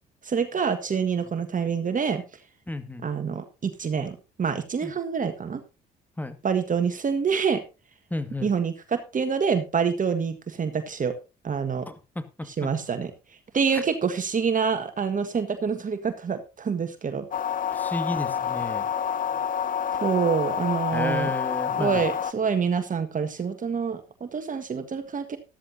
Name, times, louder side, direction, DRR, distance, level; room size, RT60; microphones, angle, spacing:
voice 1, 0.2-2.2 3.0-5.6 6.4-7.6 8.4-11.1 11.4-11.9 12.5-13.1 13.5-17.3 20.0-21.3 21.7-25.4, right 6 dB, 40° right, 8 dB, 1.6 m, -26 dB
voice 2, 2.7-3.1 4.8-4.9 6.2-6.4 8.1-8.5 11.9-12.7 13.7-13.8 17.7-18.9 20.9-22.0, left 2 dB, 10° left, 10 dB, 1.9 m, -32 dB
sound 1, 17.3-22.3, left 8 dB, 40° left, 0.9 m, -28 dB
13.5 x 13.0 x 2.7 m, 0.29 s
hypercardioid pair, 50°, 20 cm